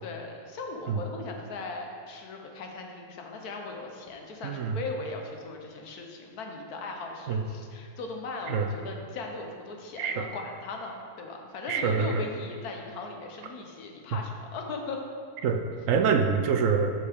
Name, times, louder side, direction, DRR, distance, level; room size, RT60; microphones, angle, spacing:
voice 1, 0.0-15.0, left 3 dB, 80° left, 2 dB, 1.5 m, -38 dB
voice 2, 4.4-4.8 7.3-7.4 8.5-8.7 10.0-10.3 11.7-12.2 15.4-15.6 15.9-16.9, right 6 dB, 65° right, 5 dB, 0.9 m, -25 dB
9.3 x 6.3 x 3.6 m, 2.3 s
omnidirectional pair, 1.6 m